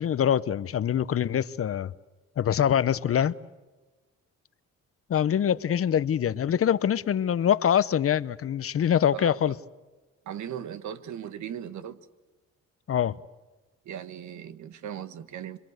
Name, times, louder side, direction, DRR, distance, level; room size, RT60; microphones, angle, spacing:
voice 1, 0.0-1.9 2.4-3.3 5.1-9.5 12.9-13.1, left 9 dB, 50° left, 0.8 m, -24 dB
voice 2, 9.1-9.5 10.2-12.1 13.8-15.6, right 9 dB, 70° right, 1.5 m, -38 dB
27.0 x 23.5 x 8.0 m
cardioid pair, 90°, 30 cm